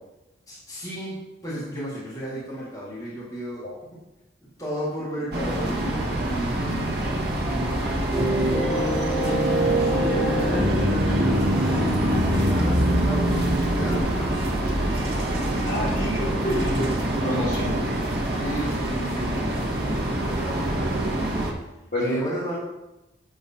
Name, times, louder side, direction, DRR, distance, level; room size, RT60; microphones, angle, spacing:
voice 1, 0.5-3.7 4.4-11.8 12.3-16.5 18.3-21.4 22.0-22.6, equal, 20° left, -10 dB, 1.9 m, -35 dB
sound 1, 5.3-21.5, right 1 dB, 55° right, 1.1 m, -26 dB
sound 2, 8.1-14.0, equal, 5° right, 2.3 m, -24 dB
voice 2, 15.7-17.9 21.9-22.2, left 1 dB, 50° left, -6 dB, 2.8 m, -29 dB
7.8 x 3.8 x 5.6 m, 0.97 s
head